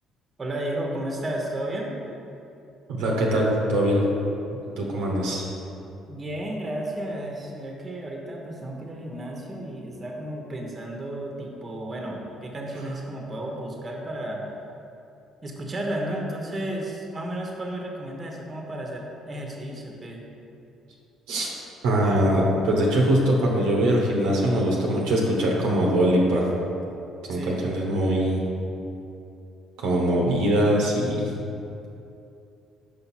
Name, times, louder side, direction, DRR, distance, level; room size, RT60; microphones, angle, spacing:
voice 1, 0.4-1.9 6.0-14.4 15.4-20.2 27.3-27.6, right 1 dB, 35° right, 0 dB, 1.1 m, -33 dB
voice 2, 2.9-4.0 4.8-5.4 21.3-21.5 21.8-26.4 27.3-28.4 29.8-31.3, right 1 dB, 75° right, -2 dB, 1.0 m, -22 dB
5.7 x 5.1 x 4.2 m, 2.7 s
hypercardioid pair, 55°, 0 cm